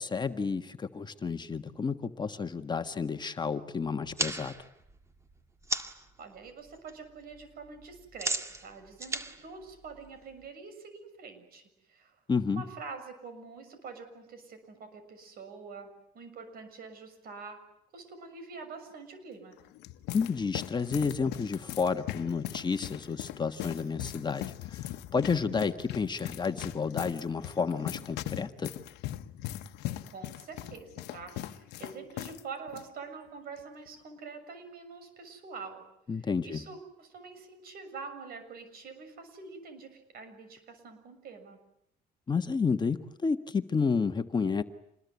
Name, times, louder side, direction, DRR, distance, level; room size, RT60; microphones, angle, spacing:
voice 1, 0.0-4.5 12.3-12.6 20.1-28.7 36.1-36.6 42.3-44.6, left 5 dB, 25° left, 7 dB, 1.5 m, -31 dB
sound 1, 4.0-6.1 6.5-6.9 7.2-10.4, right 2 dB, 15° right, 2.1 m, -36 dB
voice 2, 6.2-11.6 11.9-12.2 12.5-17.7 17.9-19.6 29.8-35.9 36.4-41.6, right 4 dB, 65° right, 9 dB, 6.8 m, -46 dB
sound 2, 19.5-32.4 32.7-32.8 33.6-33.9, left 14 dB, 85° left, 1.1 m, -40 dB
27.5 x 21.0 x 9.5 m, 0.77 s
cardioid pair, 110°, 17 cm